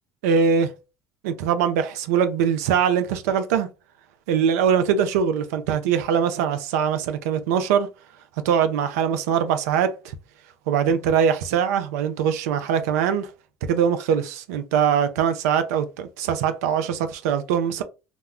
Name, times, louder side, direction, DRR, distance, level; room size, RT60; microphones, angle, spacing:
voice 1, 0.2-0.7 1.2-3.7 4.3-7.9 8.4-9.9 10.7-13.3 13.6-17.8, right 7 dB, 80° right, 0.4 m, -22 dB
2.2 x 2.1 x 3.6 m
hypercardioid pair, 75°, 8 cm